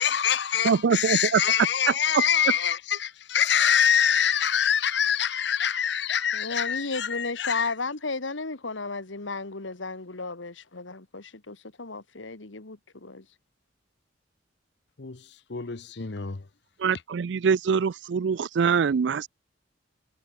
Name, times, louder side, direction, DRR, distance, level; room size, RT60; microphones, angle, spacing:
voice 1, 0.0-7.7 15.0-15.2 15.5-16.4, left 8 dB, 60° left, 0.9 m, -25 dB
voice 2, 0.6-1.4 1.9-2.2 16.8-19.3, right 6 dB, 65° right, 0.4 m, -24 dB
voice 3, 6.3-13.3, left 3 dB, 80° left, 1.8 m, -34 dB
head